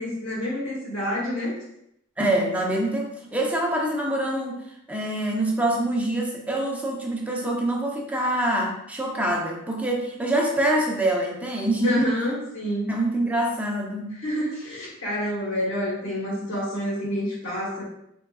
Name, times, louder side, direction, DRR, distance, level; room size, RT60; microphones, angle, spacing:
voice 1, 0.0-1.6 11.8-12.9 14.2-17.8, equal, 80° left, -5 dB, 1.1 m, -28 dB
voice 2, 2.2-4.6 4.9-12.0 12.9-14.1, right 1 dB, 5° right, -1 dB, 0.6 m, -25 dB
3.7 x 3.6 x 2.3 m, 0.78 s
head